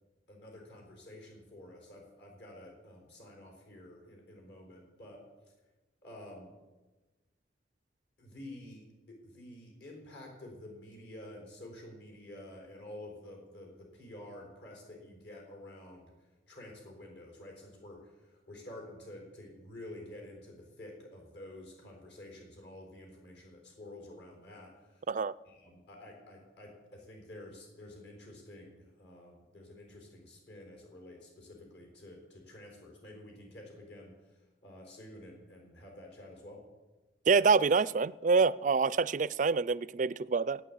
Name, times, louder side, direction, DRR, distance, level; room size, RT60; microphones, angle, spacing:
voice 1, 0.3-5.2 6.0-6.5 8.2-16.1 16.5-25.0 25.4-36.6, left 1 dB, 65° left, 1 dB, 4.2 m, -50 dB
voice 2, 37.3-40.6, right 4 dB, 45° right, 18 dB, 0.4 m, -26 dB
15.0 x 9.3 x 8.4 m, 1.2 s
head